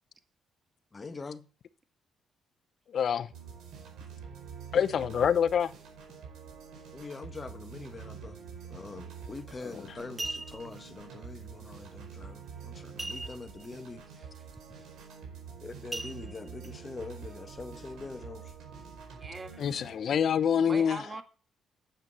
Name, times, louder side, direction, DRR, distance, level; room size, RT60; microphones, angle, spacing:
voice 1, 0.9-1.5 6.9-8.4 8.7-14.0 15.6-18.5, left 3 dB, 30° left, 1.3 m, -43 dB
voice 2, 2.9-3.3 4.7-5.7 9.6-9.8 19.6-21.0, left 8 dB, 60° left, 0.7 m, -26 dB
sound 1, 3.3-19.9, right 6 dB, 85° right, 4.8 m, -46 dB
sound 2, 9.3-9.5 10.0-10.8 13.0-13.7 14.0-14.1 14.6-14.8 15.9-16.7 17.3-17.4, right 2 dB, 10° right, 0.4 m, -39 dB
voice 3, 19.2-19.7 20.7-21.2, right 3 dB, 30° right, 1.7 m, -42 dB
9.2 x 7.5 x 5.4 m
cardioid pair, 90°, 0 cm